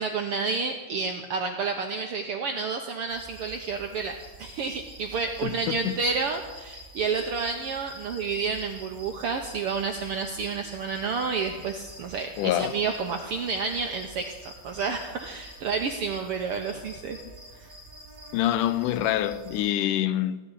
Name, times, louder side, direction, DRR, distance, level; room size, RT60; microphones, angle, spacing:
voice 1, 0.0-4.1 4.4-14.3 14.6-17.2 17.6-17.7, right 5 dB, 75° right, 1.3 m, -30 dB
sound 1, 3.1-19.7, right 1 dB, 10° right, 3.5 m, -47 dB
voice 2, 5.4-5.9 12.4-12.7 18.3-20.4, left 12 dB, 85° left, 2.3 m, -26 dB
15.5 x 6.9 x 9.8 m
omnidirectional pair, 3.6 m